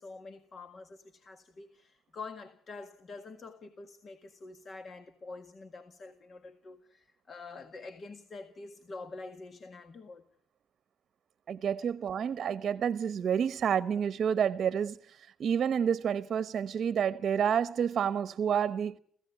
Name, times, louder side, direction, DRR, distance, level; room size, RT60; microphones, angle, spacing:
voice 1, 0.0-10.2, left 3 dB, 45° left, 1.8 m, -46 dB
voice 2, 11.5-19.0, right 8 dB, 60° right, 0.9 m, -29 dB
28.0 x 16.0 x 8.3 m
cardioid pair, 90°, 0 cm